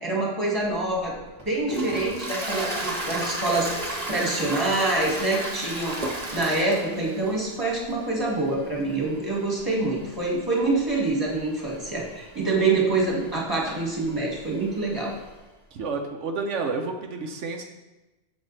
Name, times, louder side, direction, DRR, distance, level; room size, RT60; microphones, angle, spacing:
voice 1, 0.0-1.2 1.5-3.7 4.1-6.0 6.3-15.1, right 2 dB, 20° right, -3 dB, 2.1 m, -26 dB
Toilet flush, 0.7-15.4, right 1 dB, 35° right, 1.5 m, -35 dB
voice 2, 15.7-17.6, right 4 dB, 90° right, 3 dB, 1.1 m, -30 dB
8.2 x 7.1 x 3.3 m, 1.1 s
omnidirectional pair, 1.2 m